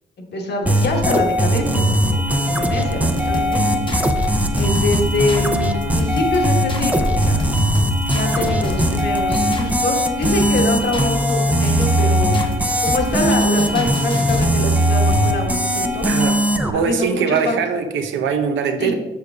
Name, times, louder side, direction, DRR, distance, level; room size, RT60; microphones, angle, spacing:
voice 1, 0.3-3.8 4.5-7.4 8.1-12.4 12.8-16.1 16.7-17.6 18.8-18.9, left 2 dB, 55° left, 2 dB, 1.3 m, -25 dB
sound 1, 0.7-16.7, equal, 5° right, 0.5 m, -19 dB
sound 2, 3.2-14.5, left 2 dB, 25° left, 0.9 m, -27 dB
voice 2, 16.0-16.4 16.7-18.9, right 6 dB, 75° right, 6 dB, 0.8 m, -21 dB
6.7 x 6.4 x 2.3 m, 1.1 s
cardioid pair, 90°, 20 cm